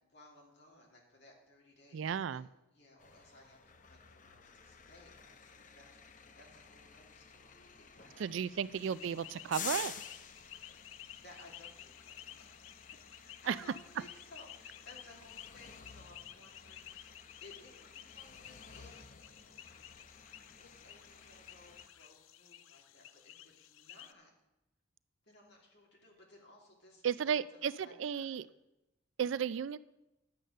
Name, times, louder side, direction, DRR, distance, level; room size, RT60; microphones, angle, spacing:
voice 1, 0.1-2.4 2.7-8.2 8.5-9.1 9.3-9.5 11.1-12.8 13.2-16.9 17.4-19.2 20.6-24.3 25.2-28.4 29.4-29.5, left 2 dB, 55° left, -1 dB, 2.8 m, -59 dB
voice 2, 1.9-2.5 8.2-9.9 13.5-13.6 27.0-28.5 29.2-29.8, right 7 dB, 70° right, 18 dB, 0.3 m, -34 dB
sound 1, 3.0-21.9, left 7 dB, 40° left, 0.7 m, -51 dB
sound 2, 8.7-24.1, left 11 dB, 85° left, 0.5 m, -54 dB
11.0 x 7.9 x 6.5 m, 0.93 s
head